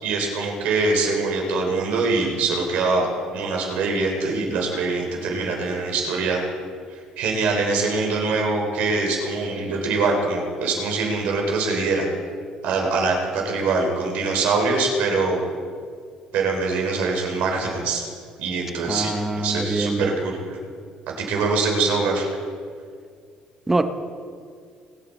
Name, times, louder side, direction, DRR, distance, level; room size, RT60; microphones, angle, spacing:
voice 1, 0.0-3.1 3.3-6.4 6.9-12.1 12.6-15.4 16.3-18.0 18.4-20.4 21.2-22.3, right 3 dB, 75° right, 0 dB, 3.5 m, -23 dB
voice 2, 18.8-20.1 23.7-23.8, right 2 dB, 10° right, 8 dB, 0.8 m, -24 dB
21.5 x 9.1 x 4.2 m, 2.2 s
cardioid pair, 150°, 3 cm